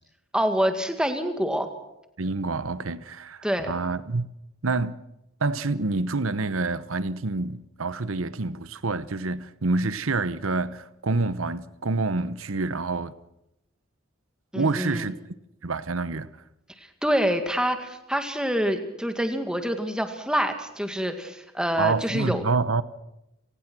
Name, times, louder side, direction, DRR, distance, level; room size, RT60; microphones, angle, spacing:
voice 1, 0.3-1.7 3.4-3.7 14.5-15.1 16.8-22.4, equal, 5° right, 1.9 m, -26 dB
voice 2, 2.2-4.2 4.6-5.0 5.4-13.1 14.5-15.1 15.6-16.3 21.8-22.8, right 3 dB, 75° right, 1.0 m, -27 dB
29.5 x 19.0 x 6.2 m
head